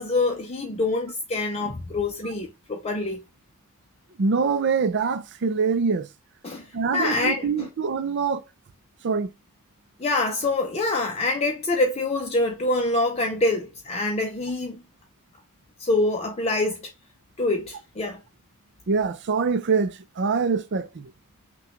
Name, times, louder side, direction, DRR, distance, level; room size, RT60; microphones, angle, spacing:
voice 1, 0.0-3.2 6.4-6.7 6.9-7.7 10.0-14.8 15.8-16.9 17.4-18.2, left 2 dB, 30° left, 0.5 m, -25 dB
voice 2, 4.2-6.1 6.7-8.4 9.0-9.3 18.9-21.1, right 5 dB, 50° right, 0.5 m, -24 dB
5.9 x 2.3 x 2.9 m
head